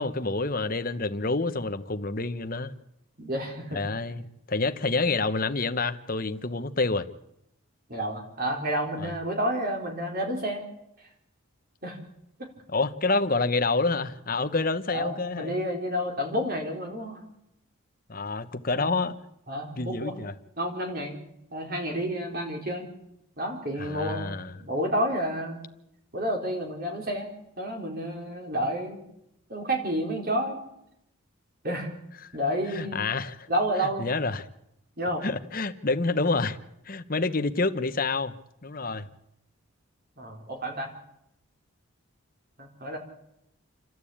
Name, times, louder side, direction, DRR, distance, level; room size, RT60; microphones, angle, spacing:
voice 1, 0.0-2.7 3.7-7.1 9.0-9.1 12.7-15.5 18.1-19.2 19.8-20.3 23.8-24.5 32.7-33.5 34.0-34.5 35.2-36.6 36.9-38.4 38.6-39.1, left 3 dB, 40° left, 1.1 m, -28 dB
voice 2, 3.2-3.9 7.9-10.7 11.8-12.0 12.4-12.5 14.9-17.2 18.7-19.0 19.5-20.1 20.6-21.1 21.5-22.9 23.4-25.6 26.1-29.0 29.5-30.6 31.6-31.9 32.3-33.0 33.5-34.1 35.0-35.2 40.2-40.9 42.6-43.0, equal, 45° right, 4.5 m, -30 dB
29.0 x 12.5 x 8.7 m
head